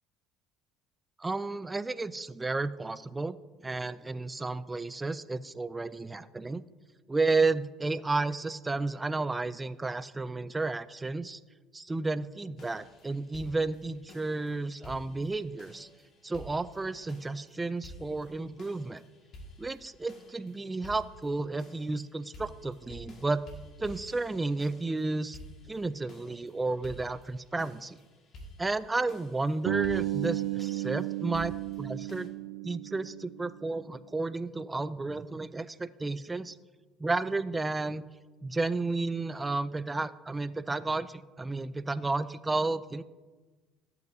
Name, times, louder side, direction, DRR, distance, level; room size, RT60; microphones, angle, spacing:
voice 1, 1.2-3.4 3.6-6.6 7.1-11.4 11.7-15.9 16.2-19.0 19.6-23.4 23.8-25.4 25.7-28.0 28.6-32.3 32.6-36.6 37.0-38.0 38.4-43.0, right 3 dB, 15° right, 14 dB, 0.3 m, -32 dB
sound 1, 12.6-32.3, equal, 50° left, 1.7 m, -52 dB
Bass guitar, 29.7-33.8, right 15 dB, 90° right, 0.4 m, -34 dB
13.5 x 8.2 x 2.7 m, 1.3 s
cardioid pair, 110°, 0 cm